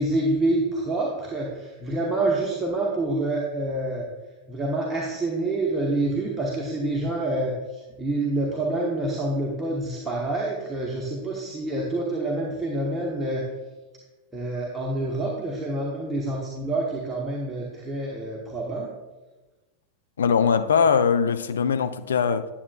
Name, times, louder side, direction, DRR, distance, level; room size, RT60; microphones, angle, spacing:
voice 1, 0.0-4.1 4.5-13.5 14.3-18.9, right 2 dB, 10° right, 1.0 m, -27 dB
voice 2, 20.2-22.5, left 6 dB, 65° left, 0.3 m, -21 dB
9.8 x 7.2 x 2.3 m
figure-of-eight pair, 90°, 0 cm